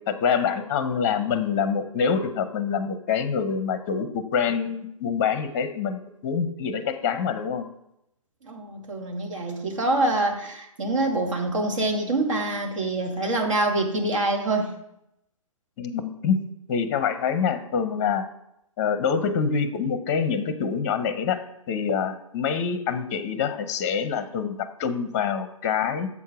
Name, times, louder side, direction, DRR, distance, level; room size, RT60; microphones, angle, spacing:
voice 1, 0.1-7.7 15.8-16.4 16.7-18.2 18.8-26.1, left 6 dB, 30° left, 11 dB, 0.7 m, -26 dB
voice 2, 8.4-14.7, right 2 dB, 60° right, 3 dB, 1.7 m, -25 dB
7.0 x 4.6 x 4.8 m, 0.81 s
figure-of-eight pair, 130°, 18 cm